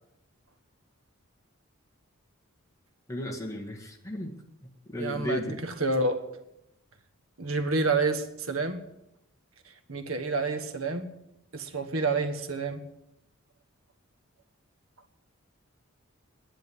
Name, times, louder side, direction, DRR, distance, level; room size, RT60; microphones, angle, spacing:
voice 1, 3.1-4.3 4.6-5.6, left 1 dB, 15° left, 0 dB, 1.9 m, -35 dB
voice 2, 5.0-6.2 7.4-8.8 9.9-11.1 11.5-12.8, right 3 dB, 75° right, 8 dB, 1.4 m, -28 dB
10.5 x 10.5 x 9.4 m, 0.84 s
head